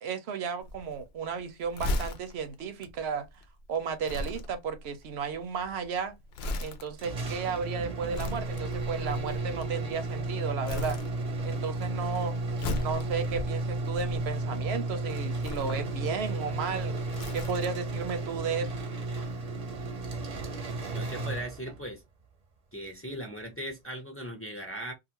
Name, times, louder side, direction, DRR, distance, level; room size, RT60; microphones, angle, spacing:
voice 1, 0.0-3.3 3.7-6.1 6.6-11.0 11.4-12.4 12.8-17.0 17.3-18.8, right 6 dB, 80° right, 0.9 m, -34 dB
Crumpling crinkling, 0.6-10.3 10.6-11.6 11.9-14.6 15.3-18.0 18.3-18.4, left 1 dB, 75° left, 0.8 m, -38 dB
sound 1, 7.0-21.9, right 2 dB, 40° right, 0.7 m, -33 dB
voice 2, 20.9-22.0 22.7-24.9, right 1 dB, 15° left, 0.6 m, -38 dB
2.5 x 2.4 x 2.8 m
omnidirectional pair, 1.1 m